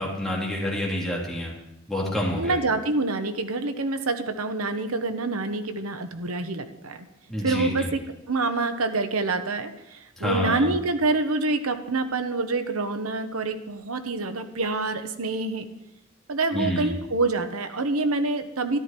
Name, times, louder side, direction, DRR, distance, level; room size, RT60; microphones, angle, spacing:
voice 1, 0.0-1.5 1.9-2.6 7.3-7.9 10.2-10.7 16.5-16.9, left 1 dB, ahead, -5 dB, 3.3 m, -28 dB
voice 2, 2.4-7.1 7.4-8.0 8.3-15.7 16.3-18.8, right 3 dB, 90° right, 9 dB, 1.1 m, -26 dB
13.5 x 12.5 x 4.5 m, 0.91 s
head